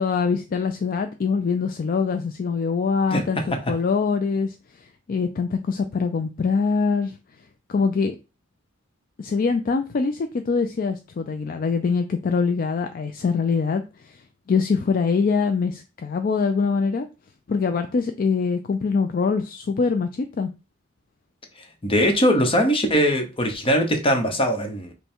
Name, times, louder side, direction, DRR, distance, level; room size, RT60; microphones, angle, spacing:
voice 1, 0.0-3.4 3.7-4.6 5.1-7.1 7.7-8.2 9.2-14.2 14.5-17.1 17.5-20.5, left 5 dB, 45° left, 7 dB, 0.4 m, -23 dB
voice 2, 21.8-24.9, equal, 30° left, 5 dB, 0.9 m, -21 dB
5.4 x 2.2 x 4.4 m, 0.29 s
head